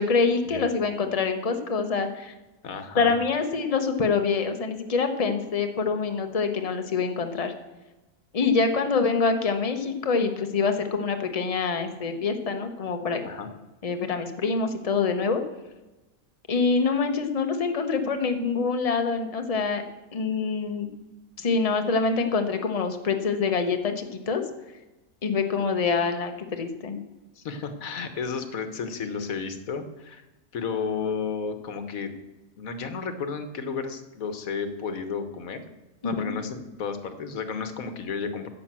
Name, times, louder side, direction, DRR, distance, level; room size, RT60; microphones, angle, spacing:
voice 1, 0.0-2.3 3.0-7.5 8.3-13.2 13.8-15.4 16.5-19.8 20.1-20.9 21.4-24.4 25.2-27.0 36.0-36.3, left 4 dB, 30° left, 6 dB, 1.0 m, -25 dB
voice 2, 2.6-3.1 13.2-13.5 27.3-30.2 30.5-32.1 32.6-35.6 36.0-38.5, left 5 dB, 75° left, 9 dB, 1.5 m, -32 dB
10.0 x 7.5 x 7.5 m, 1.1 s
omnidirectional pair, 1.5 m